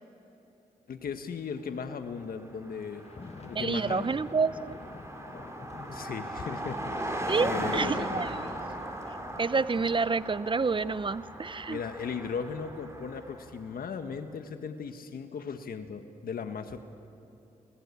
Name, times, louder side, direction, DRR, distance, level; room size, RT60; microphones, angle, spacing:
voice 1, 0.9-3.0 3.5-4.1 5.9-8.2 11.7-16.8, left 6 dB, 80° left, 8 dB, 1.6 m, -37 dB
Car passing by, 2.2-2.3 2.5-13.5, right 1 dB, 20° right, 5.8 m, -38 dB
sound 1, 3.0-13.6, left 3 dB, 45° left, 2.0 m, -50 dB
voice 2, 3.5-4.8 7.3-8.3 9.4-11.8, right 4 dB, 35° right, 16 dB, 0.7 m, -28 dB
30.0 x 20.0 x 8.5 m, 3.0 s
cardioid pair, 50°, 15 cm